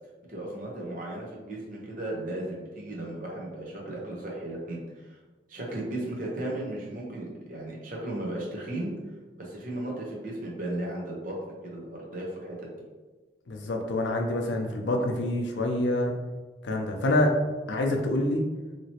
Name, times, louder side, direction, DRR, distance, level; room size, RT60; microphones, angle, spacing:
voice 1, 0.3-4.8 5.1-5.2 5.5-8.9 9.4-11.4 11.6-12.7, right 1 dB, 45° right, -3 dB, 0.8 m, -35 dB
voice 2, 13.5-16.1 16.6-17.3 17.7-18.4, left 1 dB, 85° left, 2 dB, 0.5 m, -26 dB
2.9 x 2.9 x 2.8 m, 1.3 s
head